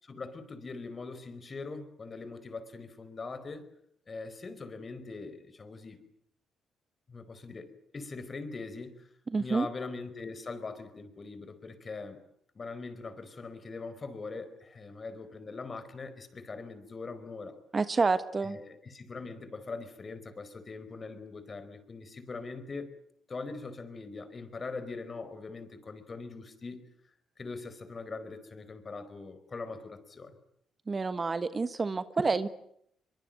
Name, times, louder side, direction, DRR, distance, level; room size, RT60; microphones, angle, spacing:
voice 1, 0.0-3.6 4.1-6.0 7.1-9.1 9.4-12.2 12.5-17.6 18.4-22.9 23.3-26.8 27.4-30.4, left 3 dB, 35° left, 11 dB, 4.6 m, -42 dB
voice 2, 9.3-9.7 17.7-18.6 30.9-32.5, right 4 dB, 30° right, 12 dB, 1.3 m, -28 dB
23.0 x 23.0 x 9.1 m, 0.72 s
cardioid pair, 90°, 0 cm